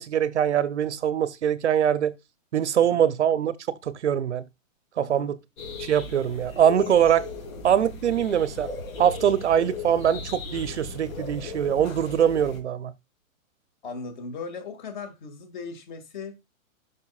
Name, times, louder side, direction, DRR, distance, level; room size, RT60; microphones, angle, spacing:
voice 1, 0.0-2.1 2.5-4.4 5.0-5.4 5.8-7.3 7.6-8.7 9.0-12.9, right 9 dB, 55° right, 0.8 m, -23 dB
voice 2, 5.0-5.3 13.8-16.4, left 4 dB, 35° left, 2.2 m, -38 dB
sound 1, 5.6-12.6, left 3 dB, 80° left, 3.4 m, -37 dB
12.5 x 5.7 x 2.4 m
hypercardioid pair, 175°, 41 cm